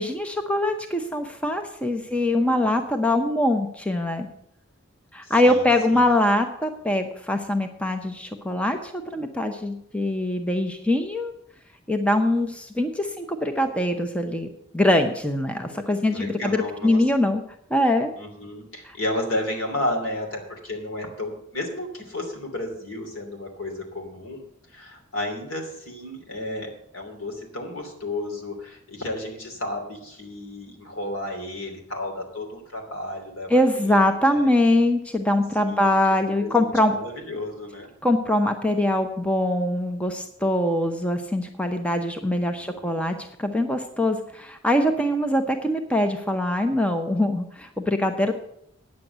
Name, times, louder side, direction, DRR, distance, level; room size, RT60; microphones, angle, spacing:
voice 1, 0.0-4.3 5.1-11.3 11.9-14.5 14.7-17.4 17.7-18.1 18.9-19.0 33.5-36.9 38.0-48.4, left 1 dB, 5° left, 6 dB, 0.7 m, -23 dB
voice 2, 2.0-2.7 5.2-6.1 15.6-15.8 16.0-17.0 18.1-24.4 24.7-34.0 34.3-34.5 35.6-37.9 42.5-42.9, left 1 dB, 70° left, 2 dB, 2.9 m, -33 dB
9.6 x 7.7 x 7.9 m, 0.72 s
head